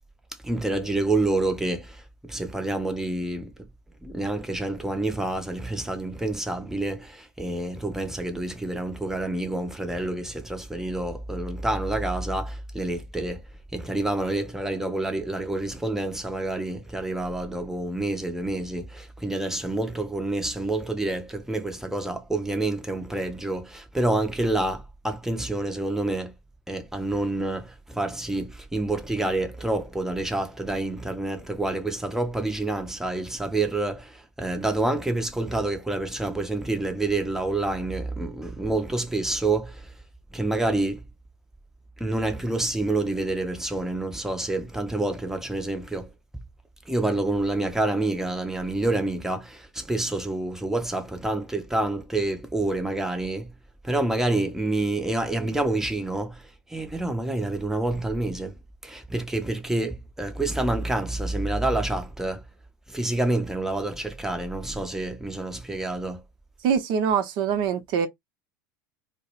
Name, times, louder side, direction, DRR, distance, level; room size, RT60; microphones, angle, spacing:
voice 1, 0.4-3.5 4.0-13.4 13.7-26.3 26.7-39.9 40.3-41.0 42.0-46.1 46.9-53.5 53.8-58.5 58.8-62.4 62.9-66.2, right 2 dB, 5° right, 0.6 m, -28 dB
voice 2, 66.6-68.1, right 7 dB, 50° right, 0.7 m, -24 dB
2.2 x 2.1 x 3.1 m
figure-of-eight pair, 75°, 10 cm